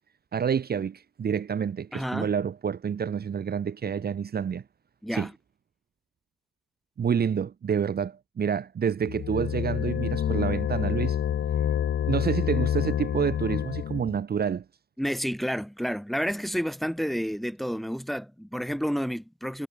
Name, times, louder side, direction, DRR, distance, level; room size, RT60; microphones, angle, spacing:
voice 1, 0.3-4.6 5.1-5.3 7.0-11.2 12.1-14.6, right 7 dB, 50° right, 1.0 m, -28 dB
voice 2, 1.9-2.3 5.0-5.3 15.0-19.7, equal, ahead, 3.8 m, -30 dB
sound 1, 9.0-14.2, left 10 dB, 70° left, 0.7 m, -27 dB
wide cardioid pair, 145°, 21 cm